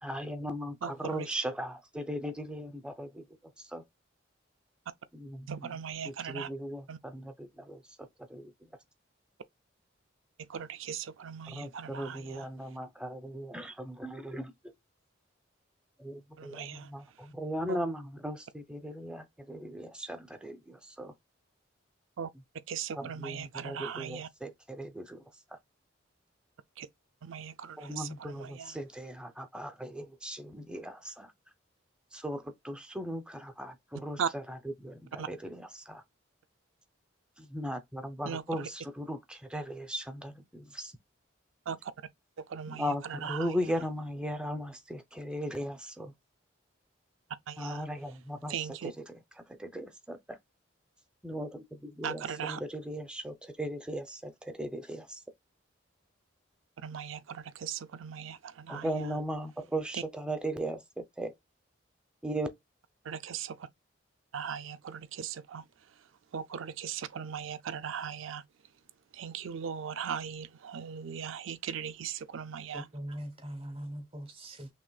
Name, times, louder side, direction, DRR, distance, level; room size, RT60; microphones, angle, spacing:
voice 1, 0.0-3.2 3.6-3.8 5.1-5.5 6.0-8.5 11.5-14.5 16.0-21.1 23.0-25.2 27.8-31.3 32.1-36.0 37.4-40.9 42.7-46.1 47.6-48.5 49.6-50.4 51.2-55.2 58.7-61.3 62.2-62.5, equal, 5° right, 0.6 m, -38 dB
voice 2, 0.8-1.3 5.5-6.5 6.9-7.0 10.4-12.5 16.4-16.9 17.2-17.3 17.7-17.8 22.2-22.3 22.7-24.3 26.8-26.9 27.2-28.8 34.2-34.3 35.2-35.3 38.2-38.7 41.7-41.9 42.4-43.6 47.5-47.9 48.5-48.9 52.0-52.6 56.8-59.1 59.9-60.0 63.0-63.7 64.3-65.6 65.9-66.0 66.3-68.4 69.1-72.9, right 7 dB, 80° right, 0.4 m, -38 dB
voice 3, 72.7-74.7, equal, 30° right, 1.0 m, -41 dB
5.9 x 2.5 x 2.3 m
head